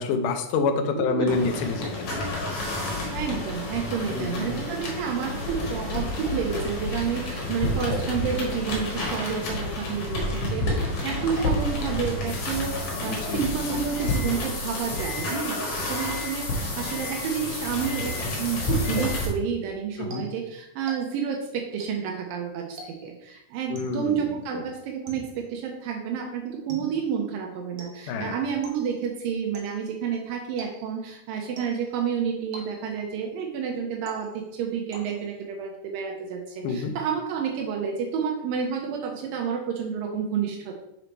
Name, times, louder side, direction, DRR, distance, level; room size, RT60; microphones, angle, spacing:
voice 1, 0.0-2.1 4.1-4.6 13.1-13.4 20.0-20.2 23.7-24.2 24.5-24.6 28.1-28.4 36.6-36.9, left 4 dB, 75° left, 6 dB, 2.1 m, -27 dB
voice 2, 0.9-1.4 3.1-40.7, right 7 dB, 80° right, 2 dB, 2.5 m, -30 dB
sound 1, 1.3-19.3, left 2 dB, 50° left, 2.1 m, -30 dB
sound 2, 20.1-21.4 21.8-22.2 22.8-23.3 23.8-24.2 25.1-25.5 26.7-27.2 27.8-28.2 28.6-29.0 29.5-29.9 30.6-31.1 31.6-32.0 32.5-33.1 34.1-34.6 34.9-35.4, right 2 dB, 60° right, 1.7 m, -45 dB
6.7 x 4.1 x 4.4 m, 0.84 s
omnidirectional pair, 4.0 m